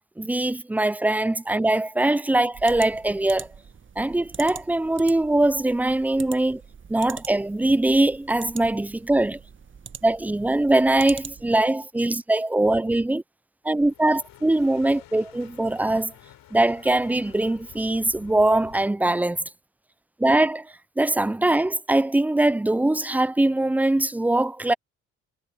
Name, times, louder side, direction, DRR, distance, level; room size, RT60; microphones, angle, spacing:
voice 1, 0.2-3.5 4.0-6.6 6.9-9.4 10.0-13.2 13.6-16.1 16.5-19.4 20.2-20.7 21.0-24.7, right 2 dB, 5° right, 0.3 m, -22 dB
sound 1, 2.5-11.7, right 6 dB, 35° right, 1.2 m, -43 dB
sound 2, 13.7-18.9, left 13 dB, 75° left, 3.3 m, -50 dB
hypercardioid pair, 50°, 35 cm